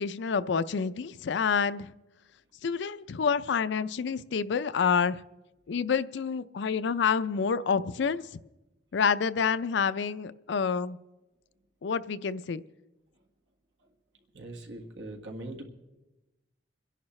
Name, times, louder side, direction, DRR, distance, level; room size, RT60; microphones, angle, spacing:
voice 1, 0.0-1.9 2.6-5.2 5.7-8.4 8.9-11.0 11.8-12.6, left 6 dB, 70° left, 14 dB, 0.4 m, -28 dB
voice 2, 14.3-15.6, right 1 dB, 90° right, 2 dB, 1.7 m, -41 dB
29.5 x 11.0 x 3.2 m, 1.1 s
head